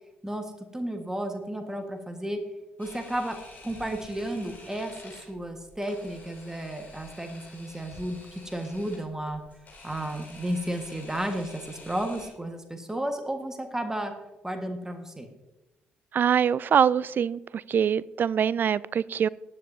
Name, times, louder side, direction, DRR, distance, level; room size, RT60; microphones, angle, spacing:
voice 1, 0.7-2.4 2.8-3.4 3.6-9.4 9.8-14.1 14.4-15.3, right 1 dB, 10° right, 5 dB, 1.6 m, -33 dB
Camera, 2.8-12.3, left 2 dB, 35° left, 4.8 m, -49 dB
voice 2, 16.1-19.3, right 8 dB, 40° right, 21 dB, 0.3 m, -24 dB
19.0 x 9.8 x 2.8 m, 1.0 s
figure-of-eight pair, 45°, 5 cm